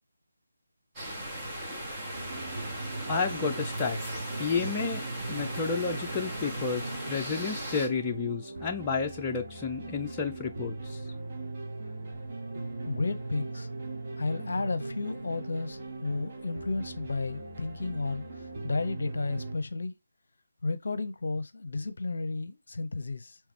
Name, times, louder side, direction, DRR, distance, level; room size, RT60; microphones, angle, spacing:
sound 1, 1.0-7.9, right 1 dB, 10° right, 1.4 m, -38 dB
sound 2, 2.1-19.6, right 2 dB, 40° right, 1.9 m, -39 dB
voice 1, 3.1-4.0 4.4-5.0 5.3-11.0, left 5 dB, 15° left, 0.5 m, -31 dB
voice 2, 12.8-13.7 14.2-19.9 20.6-23.4, left 3 dB, 55° left, 0.7 m, -33 dB
4.9 x 3.3 x 3.2 m
figure-of-eight pair, 155°, 0 cm